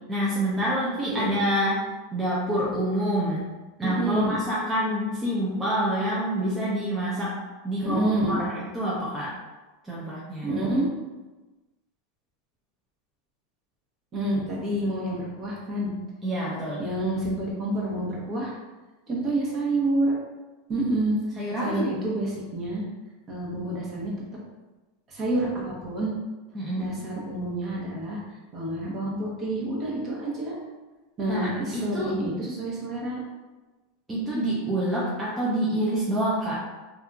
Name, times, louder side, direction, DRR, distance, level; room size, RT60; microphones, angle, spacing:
voice 1, 0.1-3.4 3.8-7.4 7.6-9.3 9.8-10.5 16.2-16.8 21.4-21.9 26.5-26.9 31.3-32.1 34.1-36.6, equal, 15° right, -7 dB, 0.6 m, -27 dB
voice 2, 3.8-4.3 7.8-8.4 10.4-10.9 14.1-15.9 16.8-18.5 19.1-20.2 20.7-21.2 21.6-22.8 23.3-24.1 25.1-26.1 26.8-28.2 28.5-30.6 31.2-33.2, right 1 dB, 35° right, -4 dB, 1.0 m, -28 dB
2.7 x 2.5 x 2.3 m, 1.2 s
hypercardioid pair, 110°, 0 cm